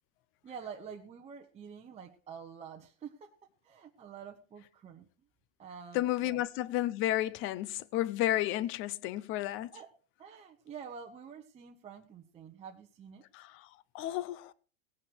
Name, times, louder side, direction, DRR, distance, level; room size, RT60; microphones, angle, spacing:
voice 1, 0.4-3.3 3.6-5.1 5.6-6.4 9.7-9.9 10.2-13.2, right 6 dB, 15° right, 1.0 m, -47 dB
voice 2, 5.9-9.7 13.3-13.7 13.9-14.5, left 14 dB, 30° left, 0.7 m, -32 dB
18.0 x 10.0 x 4.6 m
supercardioid pair, 145°, 42 cm